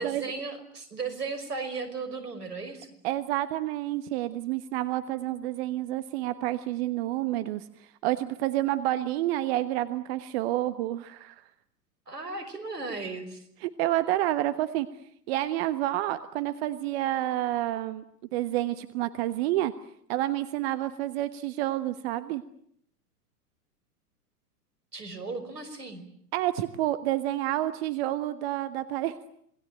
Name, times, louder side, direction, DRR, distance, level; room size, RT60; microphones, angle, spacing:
voice 1, 0.0-2.9 12.1-13.4 24.9-26.0, right 4 dB, 80° right, 10 dB, 5.8 m, -36 dB
voice 2, 3.0-7.6 8.0-11.4 13.6-14.9 15.3-18.0 18.3-19.7 20.1-22.4 26.3-29.1, right 14 dB, 40° right, 12 dB, 1.3 m, -29 dB
27.0 x 21.0 x 9.0 m, 0.69 s
figure-of-eight pair, 105°, 47 cm